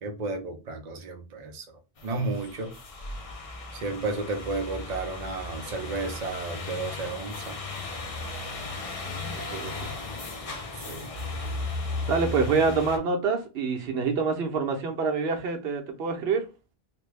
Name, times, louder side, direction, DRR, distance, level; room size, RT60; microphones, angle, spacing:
voice 1, 0.0-1.6 2.0-2.7 3.7-7.6 10.8-11.1, right 3 dB, 45° right, 0.7 m, -32 dB
sound 1, 2.0-13.0, left 3 dB, 40° left, 0.5 m, -36 dB
voice 2, 9.0-9.9 12.1-16.5, right 4 dB, 70° right, 1.0 m, -27 dB
3.3 x 2.2 x 3.3 m
omnidirectional pair, 1.1 m